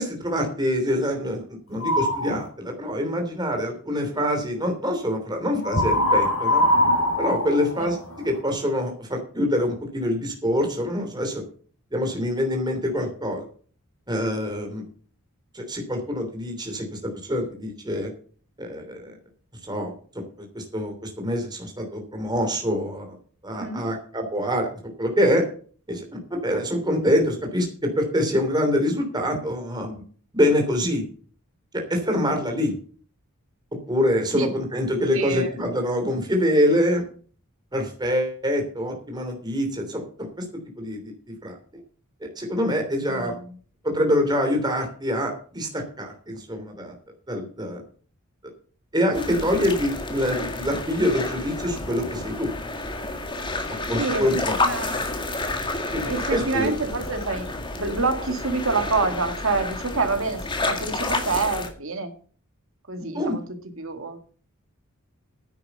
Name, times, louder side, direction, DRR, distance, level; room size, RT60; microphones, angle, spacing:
voice 1, 0.0-1.4 1.7-6.6 7.2-11.4 11.9-13.4 14.1-14.8 15.5-18.1 18.6-19.1 19.6-19.9 20.4-23.2 23.4-24.7 25.0-25.4 25.9-26.0 26.3-27.7 28.0-30.0 30.3-31.0 31.7-32.7 33.9-37.0 37.7-40.4 40.8-41.0 41.4-41.6 42.4-43.3 43.8-47.0 47.3-47.8 48.9-52.5 53.9-54.6 55.9-56.0 56.3-56.7 63.1-63.3, equal, 20° right, 3 dB, 3.1 m, -25 dB
sound 1, 1.8-2.4 5.6-8.4, left 1 dB, 60° left, 4.1 m, -22 dB
voice 2, 23.5-23.9 32.1-32.4 34.3-34.5 35.1-35.5 43.1-43.4 54.0-55.0 56.0-60.4 60.7-62.1 62.9-63.4 63.8-64.2, right 3 dB, 65° right, 7 dB, 2.0 m, -27 dB
sound 2, 49.1-61.7, left 2 dB, 20° left, 1.9 m, -30 dB
10.5 x 8.9 x 6.7 m, 0.43 s
head